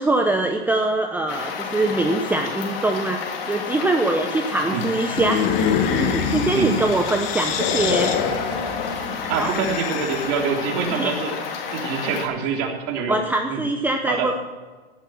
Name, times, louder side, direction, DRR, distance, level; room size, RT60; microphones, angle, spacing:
voice 1, 0.0-3.2 3.5-5.4 5.9-8.1 9.3-9.5 10.9-11.1 13.1-14.3, right 2 dB, 5° right, 4 dB, 0.7 m, -23 dB
sound 1, 1.3-12.3, left 6 dB, 65° left, 3.2 m, -31 dB
sound 2, 5.0-10.5, left 7 dB, 50° left, 2.1 m, -25 dB
voice 2, 9.3-11.3 11.7-13.2 13.5-13.6 14.1-14.3, right 6 dB, 45° right, 2 dB, 3.2 m, -25 dB
16.0 x 8.2 x 6.2 m, 1.4 s
hypercardioid pair, 130°, 32 cm